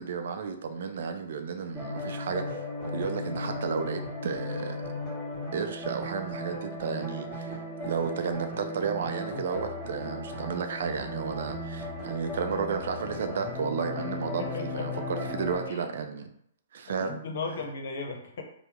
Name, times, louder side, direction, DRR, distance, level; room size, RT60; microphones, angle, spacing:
voice 1, 0.0-4.8 5.5-7.6 7.8-16.3 16.7-17.2, right 6 dB, 65° right, 6 dB, 0.5 m, -33 dB
sound 1, 1.7-15.7, left 1 dB, 5° right, 1.4 m, -36 dB
voice 2, 14.4-15.0 15.7-15.9 17.0-18.4, left 4 dB, 65° left, 3 dB, 0.7 m, -36 dB
2.9 x 2.0 x 3.5 m, 0.70 s
hypercardioid pair, 135°, 0 cm